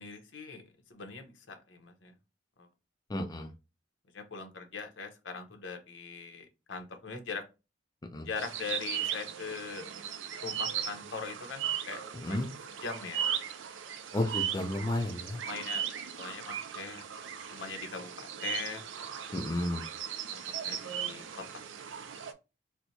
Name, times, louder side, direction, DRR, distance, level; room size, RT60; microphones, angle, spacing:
voice 1, 0.0-2.1 2.6-2.7 4.1-7.4 8.2-9.9 10.4-12.4 12.8-13.3 15.4-15.9 16.2-17.1 17.5-18.8 20.3-21.2, left 5 dB, 80° left, 4 dB, 0.8 m, -41 dB
voice 2, 3.1-3.5 8.1-8.2 12.2-12.5 14.1-15.4 19.3-19.8, left 1 dB, 20° left, 2 dB, 0.5 m, -32 dB
sound 1, 8.4-22.3, right 9 dB, 90° right, 0.5 m, -37 dB
4.4 x 2.1 x 2.7 m, 0.28 s
head